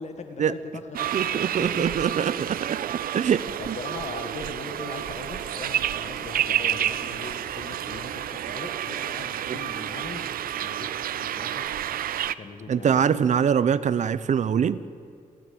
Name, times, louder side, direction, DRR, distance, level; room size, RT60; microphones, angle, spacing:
voice 1, 0.0-1.2 1.6-1.9 3.6-10.3 10.6-11.7 12.4-13.0, left 4 dB, 50° left, 6 dB, 1.8 m, -40 dB
sound 1, 0.9-12.3, right 11 dB, 90° right, 0.6 m, -30 dB
voice 2, 1.1-2.8 3.1-3.8 9.5-9.6 12.7-14.8, right 8 dB, 55° right, 16 dB, 0.8 m, -23 dB
sound 2, 4.6-10.3, left 4 dB, 80° left, 2.6 m, -49 dB
29.5 x 12.5 x 8.8 m, 2.4 s
wide cardioid pair, 140°, 14 cm